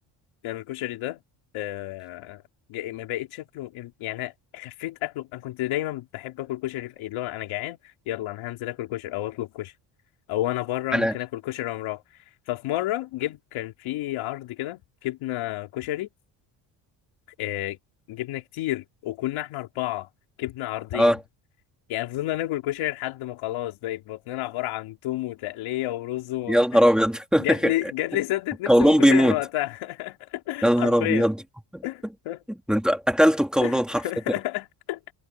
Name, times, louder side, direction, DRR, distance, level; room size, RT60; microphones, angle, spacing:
voice 1, 0.4-1.2 1.5-2.4 2.7-7.8 8.1-9.7 10.3-12.0 12.5-16.1 17.4-17.8 18.1-20.1 20.4-21.2 21.9-26.8 27.4-31.3 31.8-32.4 33.6-35.0, left 15 dB, 80° left, 3.6 m, -31 dB
voice 2, 26.5-27.7 28.7-29.3 30.6-31.3 32.7-34.0, equal, ahead, 2.8 m, -19 dB
cardioid pair, 155°, 47 cm